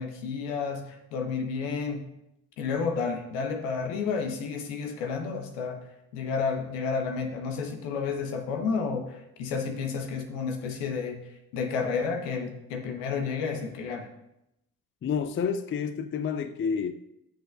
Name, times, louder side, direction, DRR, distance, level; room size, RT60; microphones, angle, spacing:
voice 1, 0.0-2.1 2.6-5.8 6.1-11.2 11.5-14.1, left 5 dB, 70° left, 4 dB, 1.4 m, -31 dB
voice 2, 15.0-16.9, left 6 dB, 25° left, 10 dB, 0.5 m, -29 dB
15.0 x 6.4 x 2.6 m, 0.85 s
figure-of-eight pair, 45°, 48 cm